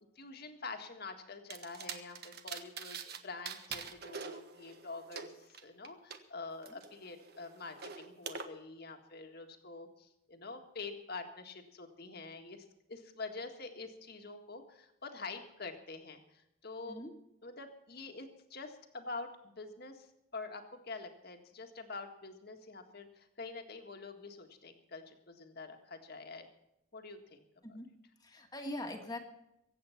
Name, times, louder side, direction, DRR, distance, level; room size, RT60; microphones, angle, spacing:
voice 1, 0.1-17.0 17.4-20.1 20.3-26.5 26.9-27.4, left 3 dB, 50° left, 5 dB, 1.7 m, -46 dB
sound 1, 1.5-3.2 3.4-6.2 6.6-8.4, right 6 dB, 50° right, 1.2 m, -45 dB
voice 2, 28.2-29.2, left 1 dB, 20° left, 3 dB, 1.7 m, -42 dB
23.0 x 8.6 x 5.8 m, 0.84 s
head